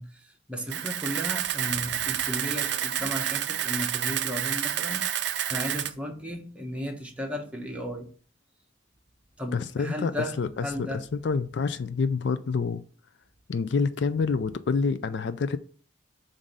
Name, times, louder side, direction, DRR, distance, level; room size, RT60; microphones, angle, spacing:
voice 1, 0.0-8.1 9.4-10.4 10.6-11.0, equal, 5° right, 0.9 m, -35 dB
Camera, 0.7-5.9, right 10 dB, 60° right, 0.4 m, -29 dB
sound 1, 1.1-4.0 4.2-4.6 5.0-6.4 7.0-8.3 8.8-12.6 13.2-14.6, equal, 40° left, 1.3 m, -58 dB
voice 2, 9.5-12.8 13.5-15.6, left 5 dB, 65° left, 0.4 m, -27 dB
7.2 x 2.6 x 5.3 m
head